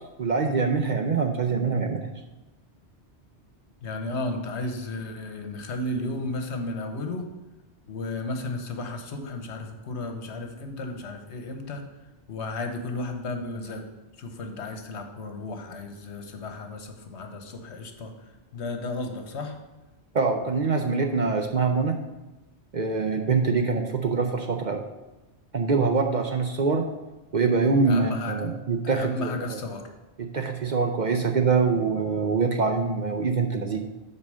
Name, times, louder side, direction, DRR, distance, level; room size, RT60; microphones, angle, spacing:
voice 1, 0.2-2.2 20.1-21.9 22.7-24.8 25.5-26.9 27.3-29.6 30.2-33.8, right 4 dB, 50° right, 4 dB, 0.7 m, -24 dB
voice 2, 3.8-7.3 7.9-11.9 12.3-13.8 14.2-19.6 27.8-28.5 28.8-29.9, left 2 dB, 75° left, 5 dB, 1.2 m, -34 dB
8.7 x 4.3 x 6.2 m, 1.0 s
omnidirectional pair, 1.2 m